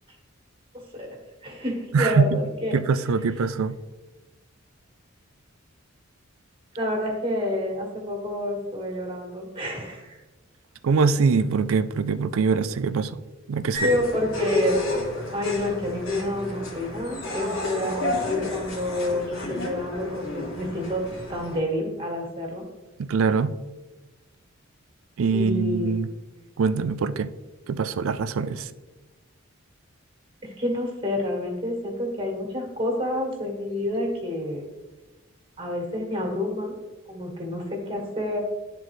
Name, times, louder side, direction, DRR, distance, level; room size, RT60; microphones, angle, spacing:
voice 1, 1.4-2.7 6.7-10.2 13.8-14.8 15.3-21.0 21.3-22.6 25.3-25.9 30.4-34.6 35.6-36.8 37.1-38.4, left 1 dB, 25° right, 0 dB, 1.6 m, -28 dB
voice 2, 1.9-2.4 2.7-3.8 10.8-13.2 13.5-13.9 23.0-23.5 25.2-26.1 26.6-27.3 27.7-28.7, right 5 dB, 75° right, 14 dB, 0.4 m, -23 dB
sound 1, 13.7-21.6, left 1 dB, 70° left, 1.8 m, -30 dB
11.0 x 3.8 x 3.1 m, 1.1 s
head